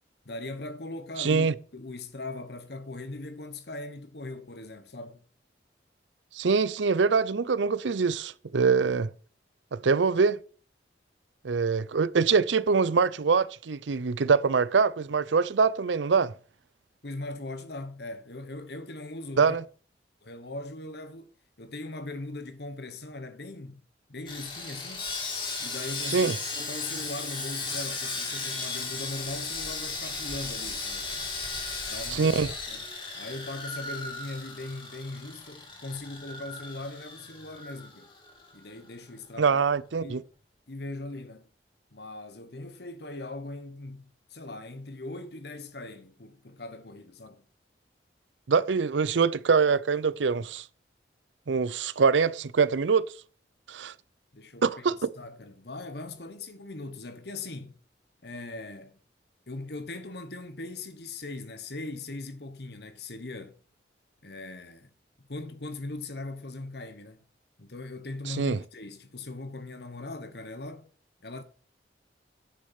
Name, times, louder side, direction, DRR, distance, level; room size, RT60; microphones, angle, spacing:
voice 1, 0.2-5.2 17.0-19.6 20.2-21.3 21.6-23.8 24.1-25.1 25.6-31.4 31.9-32.9 33.1-38.1 38.5-39.6 40.0-40.2 40.7-41.5 41.9-47.4 54.3-57.8 58.2-59.0 59.5-63.6 64.2-64.9 65.3-67.2 67.6-70.9 71.2-71.4, left 2 dB, 65° left, 1.3 m, -40 dB
voice 2, 1.2-1.5 6.3-9.1 9.7-10.4 11.4-16.3 19.4-19.6 26.1-26.3 32.1-32.5 39.4-40.2 48.5-50.6 51.5-53.1 53.7-53.9 54.6-55.1 68.3-68.6, right 5 dB, 90° right, 0.6 m, -24 dB
Sawing, 24.3-38.5 38.8-38.9 39.4-39.5, left 3 dB, 25° left, 2.1 m, -36 dB
9.8 x 6.5 x 5.9 m
head